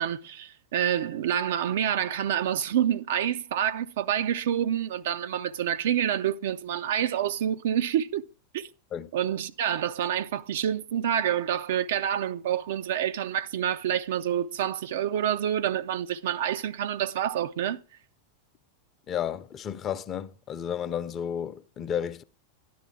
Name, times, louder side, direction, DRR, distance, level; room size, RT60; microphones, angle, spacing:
voice 1, 0.0-8.3 8.5-8.7 9.1-17.8, right 10 dB, 55° right, 0.5 m, -27 dB
voice 2, 19.1-22.2, left 9 dB, 30° left, 0.7 m, -32 dB
12.5 x 10.5 x 4.8 m
figure-of-eight pair, 90°, 0 cm